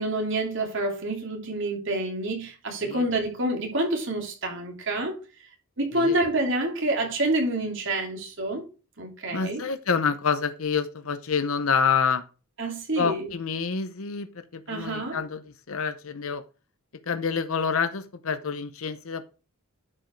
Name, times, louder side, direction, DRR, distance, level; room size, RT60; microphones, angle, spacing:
voice 1, 0.0-5.1 5.8-8.6 9.0-9.6 12.6-13.3 14.7-15.2, right 1 dB, 60° right, 3.0 m, -27 dB
voice 2, 9.3-12.2 13.0-14.3 14.5-15.4 15.7-16.4 17.1-19.3, left 5 dB, 75° left, 0.8 m, -27 dB
11.0 x 5.3 x 4.6 m
head